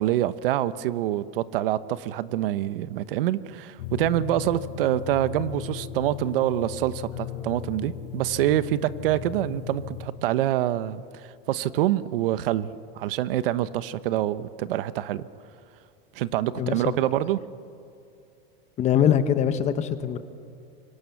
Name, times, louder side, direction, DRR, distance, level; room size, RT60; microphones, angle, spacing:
voice 1, 0.0-11.0 11.5-12.7 12.9-15.3 16.1-17.4, right 13 dB, 70° right, 14 dB, 1.1 m, -26 dB
sound 1, 3.8-10.1, left 12 dB, 60° left, 3.6 m, -37 dB
voice 2, 16.6-16.9 18.8-20.2, left 9 dB, 25° left, 11 dB, 1.1 m, -23 dB
27.0 x 24.5 x 7.2 m, 2.5 s
supercardioid pair, 165°, 29 cm